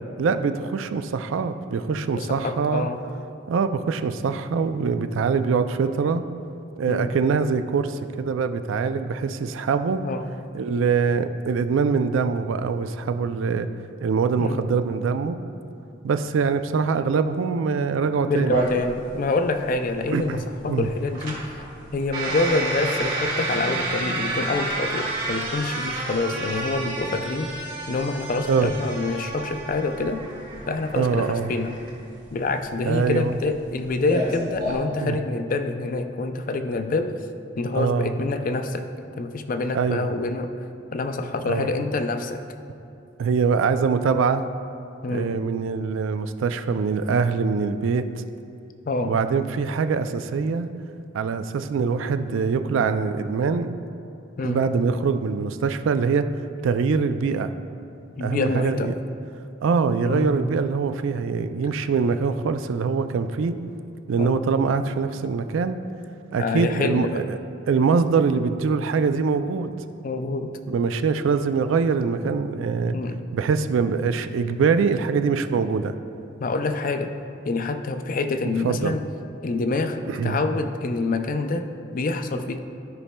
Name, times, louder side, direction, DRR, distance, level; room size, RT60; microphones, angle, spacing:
voice 1, 0.2-2.9 3.5-6.2 6.8-10.0 10.5-13.7 14.0-15.4 16.0-18.6 20.1-20.9 28.5-28.7 31.0-31.5 32.8-33.4 35.0-35.2 37.7-38.1 39.7-40.1 41.4-41.7 43.2-44.4 45.1-48.1 49.0-50.7 51.1-53.7 54.4-56.3 56.6-57.5 58.2-58.9 59.6-63.5 64.1-65.8 66.3-67.4 67.7-69.7 70.7-73.0 73.3-75.9 78.6-78.9 80.1-80.4, right 5 dB, 75° right, 10 dB, 0.3 m, -23 dB
voice 2, 2.1-3.1 6.9-7.2 10.0-10.3 14.4-14.7 18.2-21.5 21.9-27.5 27.9-30.2 30.7-31.8 32.3-37.1 37.6-40.5 40.9-42.4 45.0-45.4 48.9-49.1 54.4-54.7 58.2-58.9 60.0-60.4 64.2-64.5 66.4-67.2 70.0-70.6 72.9-73.2 76.4-77.2 77.5-79.1 79.4-82.6, left 3 dB, 40° left, 8 dB, 0.4 m, -26 dB
sound 1, 18.5-34.7, right 1 dB, 45° right, 1.7 m, -31 dB
13.0 x 5.4 x 2.2 m, 2.6 s
head